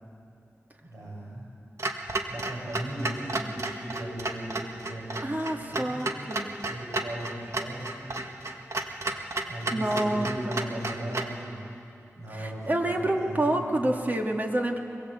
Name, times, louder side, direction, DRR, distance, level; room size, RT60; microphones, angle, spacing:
voice 1, 0.8-1.5 2.3-6.1 6.6-8.3 9.4-11.6 12.2-13.9, right 1 dB, 85° right, -3 dB, 7.6 m, -37 dB
Clock, 1.8-11.4, right 2 dB, 60° right, 1.7 m, -33 dB
voice 2, 5.2-6.5 9.7-10.3 12.3-14.8, right 1 dB, 35° right, 2 dB, 2.3 m, -28 dB
24.0 x 22.0 x 8.4 m, 2.6 s
wide cardioid pair, 100°, 5 cm